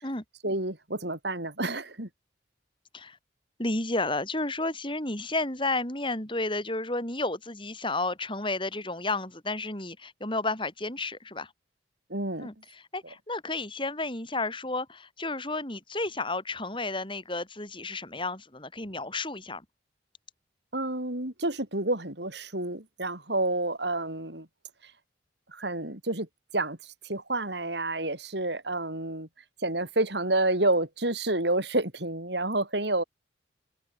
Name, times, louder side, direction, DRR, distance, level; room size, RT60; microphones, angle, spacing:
voice 1, 0.4-2.1 12.1-12.5 20.7-24.5 24.8-24.9 25.5-26.3 26.5-29.3 29.6-33.0, right 2 dB, 65° right, 5.4 m, -29 dB
voice 2, 3.6-11.5 12.4-19.6, left 2 dB, 25° left, 6.7 m, -32 dB
open air
head